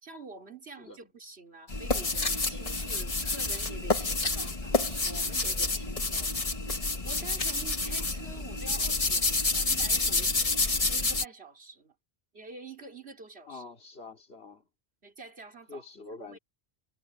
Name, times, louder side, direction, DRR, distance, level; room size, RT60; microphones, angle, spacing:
voice 1, 0.0-10.4 10.9-11.9 12.3-13.6 15.0-16.4, right 3 dB, 80° right, 3.4 m, -48 dB
voice 2, 0.8-1.1 13.5-14.7 15.7-16.4, left 3 dB, 75° left, 3.0 m, -46 dB
sound 1, 1.7-11.3, left 3 dB, 35° left, 1.4 m, -29 dB
Hiss, 2.6-3.1 3.4-4.1 4.8-5.8, right 2 dB, 45° right, 3.6 m, -48 dB
omnidirectional pair, 1.0 m